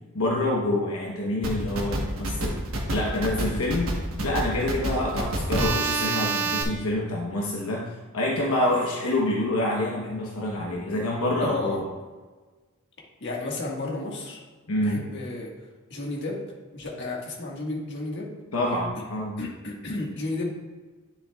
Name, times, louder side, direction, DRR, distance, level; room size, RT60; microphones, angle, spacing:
voice 1, 0.1-3.9 4.2-7.8 8.1-11.8 14.7-15.0 18.5-19.3, left 1 dB, 75° left, -3 dB, 1.0 m, -27 dB
sound 1, 1.4-6.6, right 2 dB, 70° right, 1.3 m, -27 dB
voice 2, 11.4-11.8 13.2-14.4 14.8-15.5 15.9-16.4 16.7-18.3 19.4-20.5, left 2 dB, 55° left, -2 dB, 1.6 m, -32 dB
10.0 x 6.9 x 2.3 m, 1.3 s
head